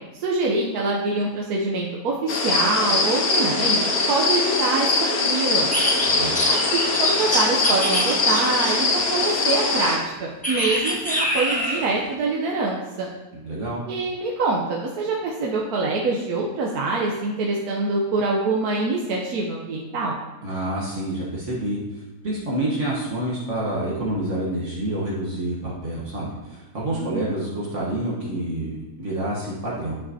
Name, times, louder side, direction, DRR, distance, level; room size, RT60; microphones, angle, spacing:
voice 1, 0.2-3.8 4.1-5.7 6.5-13.1 13.9-20.2 26.9-27.3, right 3 dB, 75° right, -2 dB, 1.3 m, -25 dB
sound 1, 2.3-10.0, left 3 dB, 70° left, 1.4 m, -22 dB
sound 2, 5.7-9.0 10.4-11.9, equal, 5° left, 1.0 m, -26 dB
voice 2, 13.3-13.8 20.4-21.8 22.2-29.9, right 1 dB, 55° right, -5 dB, 1.4 m, -28 dB
9.7 x 5.8 x 2.7 m, 1.1 s
omnidirectional pair, 1.7 m